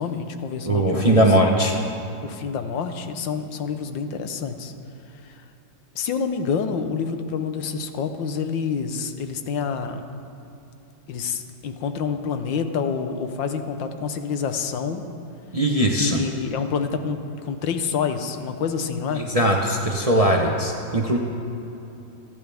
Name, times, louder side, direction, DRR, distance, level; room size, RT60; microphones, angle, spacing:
voice 1, 0.0-1.3 2.2-4.7 5.2-5.4 5.9-10.0 11.1-15.1 15.9-19.3, left 6 dB, 85° left, 7 dB, 1.6 m, -28 dB
voice 2, 0.7-1.8 15.5-16.2 19.2-21.2, right 1 dB, 30° right, 0 dB, 0.7 m, -20 dB
28.5 x 10.5 x 3.5 m, 2.9 s
omnidirectional pair, 2.0 m